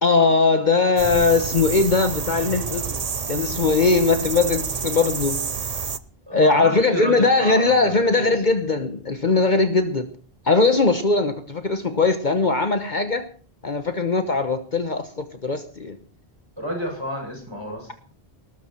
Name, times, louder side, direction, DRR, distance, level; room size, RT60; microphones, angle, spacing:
voice 1, 0.0-5.5 6.3-10.1 10.4-13.3 13.6-16.0, left 3 dB, 50° left, 8 dB, 1.3 m, -20 dB
sound 1, 1.0-6.0, right 6 dB, 40° right, 0.8 m, -29 dB
voice 2, 6.3-8.4 16.6-17.9, equal, 25° right, 0 dB, 7.6 m, -31 dB
19.5 x 13.5 x 4.5 m, 0.41 s
omnidirectional pair, 1.0 m